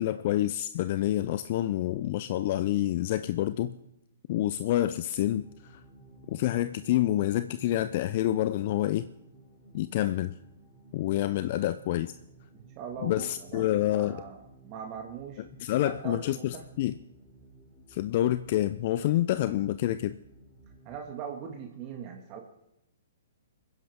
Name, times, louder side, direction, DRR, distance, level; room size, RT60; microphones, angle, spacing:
voice 1, 0.0-3.7 4.3-5.8 6.3-9.1 9.7-10.4 10.9-12.1 13.0-14.2 15.6-16.9 17.9-20.2, left 13 dB, 45° left, 13 dB, 0.5 m, -28 dB
sound 1, 5.3-21.0, right 2 dB, 5° left, 4.6 m, -56 dB
voice 2, 12.5-15.4 15.7-16.7 20.9-22.4, right 6 dB, 35° right, 2 dB, 1.9 m, -41 dB
24.0 x 10.5 x 3.6 m, 0.83 s
hypercardioid pair, 125°, 0 cm